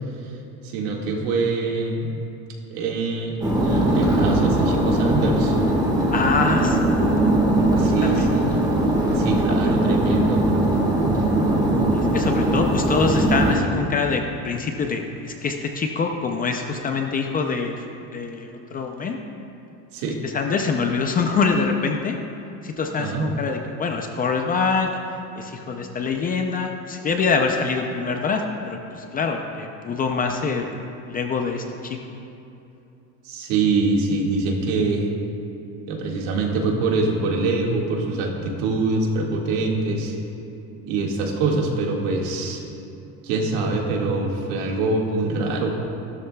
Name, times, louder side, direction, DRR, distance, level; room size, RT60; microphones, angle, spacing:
voice 1, 0.6-2.1 2.7-3.3 3.6-5.6 6.5-6.6 7.7-8.5 9.1-10.4 19.9-20.2 23.0-23.3 33.2-35.1 35.9-40.2 40.8-42.6 43.2-45.8, right 3 dB, 70° right, 0 dB, 2.0 m, -24 dB
sound 1, 3.4-13.6, right 1 dB, 10° right, 1.6 m, -20 dB
voice 2, 6.1-7.2 7.7-8.3 9.5-9.7 11.9-17.8 18.1-19.2 20.2-22.2 22.6-24.9 25.4-30.8 31.1-32.2, left 4 dB, 20° left, 3 dB, 0.5 m, -25 dB
16.0 x 12.5 x 2.3 m, 2.8 s
cardioid pair, 150°, 41 cm